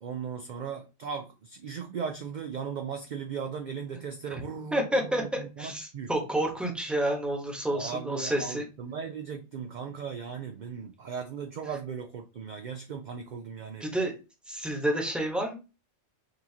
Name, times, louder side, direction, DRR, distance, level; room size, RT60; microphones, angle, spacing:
voice 1, 0.0-6.1 7.7-13.8, right 6 dB, 55° right, 0.5 m, -37 dB
voice 2, 4.7-8.6 13.8-14.2 14.5-15.6, right 1 dB, ahead, 1.0 m, -29 dB
5.3 x 2.8 x 2.8 m
omnidirectional pair, 1.3 m